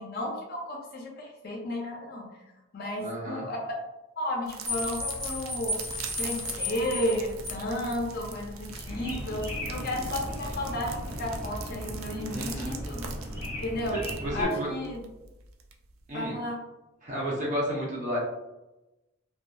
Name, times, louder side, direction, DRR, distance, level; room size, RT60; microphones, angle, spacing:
voice 1, 0.0-2.3 2.7-3.7 4.2-5.8 6.2-13.1 13.6-14.0 14.3-15.0 16.1-16.6, left 1 dB, 50° left, 0 dB, 0.5 m, -33 dB
voice 2, 3.0-3.4 12.3-12.7 13.9-14.7 16.1-16.4 17.0-18.2, equal, 40° right, -4 dB, 0.6 m, -32 dB
sound 1, 4.5-16.2, right 6 dB, 90° right, 0.4 m, -43 dB
sound 2, 4.6-11.9, left 2 dB, 20° left, 1.3 m, -37 dB
sound 3, 8.8-14.4, equal, 15° right, 1.0 m, -37 dB
2.6 x 2.3 x 2.2 m, 0.99 s
head